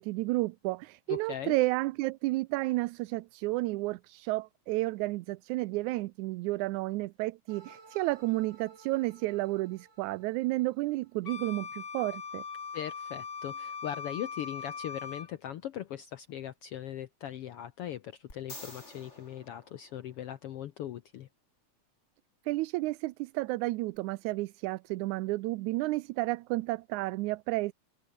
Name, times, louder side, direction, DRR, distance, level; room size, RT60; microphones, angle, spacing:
voice 1, 0.0-12.4 22.5-27.7, right 20 dB, 85° right, 2.0 m, -31 dB
voice 2, 1.1-1.6 12.7-21.3, left 11 dB, 65° left, 1.6 m, -40 dB
sound 1, 7.5-11.5, right 4 dB, 60° right, 6.3 m, -57 dB
Wind instrument woodwind instrument, 11.3-15.3, left 5 dB, 40° left, 2.7 m, -40 dB
sound 2, 18.3-20.5 23.9-24.0, left 1 dB, 20° left, 7.8 m, -49 dB
omnidirectional pair, 3.4 m